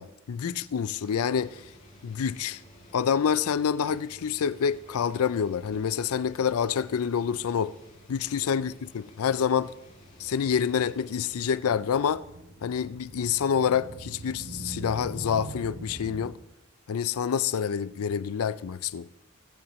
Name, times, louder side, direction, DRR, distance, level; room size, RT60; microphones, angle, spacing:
voice 1, 0.0-1.6 2.0-2.6 2.9-7.7 8.1-9.7 10.2-12.2 12.6-16.3 16.9-19.1, left 7 dB, 70° left, 0.4 m, -27 dB
sound 1, 0.6-16.3, right 2 dB, 65° right, 3.2 m, -47 dB
sound 2, 1.0-11.5, left 1 dB, 35° left, 4.5 m, -55 dB
20.5 x 8.7 x 3.1 m
head